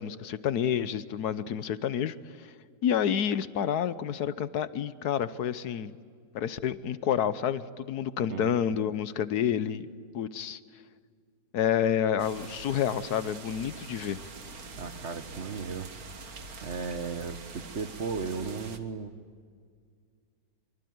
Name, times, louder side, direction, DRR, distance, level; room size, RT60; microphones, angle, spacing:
voice 1, 0.0-2.5 2.8-5.9 6.3-9.9 10.1-10.6 11.5-14.2, left 9 dB, 75° left, 15 dB, 1.4 m, -29 dB
sound 1, 12.2-18.8, right 3 dB, 65° right, 2.0 m, -44 dB
voice 2, 14.8-15.9 16.6-19.1, right 5 dB, 50° right, 10 dB, 1.2 m, -35 dB
24.5 x 24.0 x 9.5 m, 2.1 s
omnidirectional pair, 1.7 m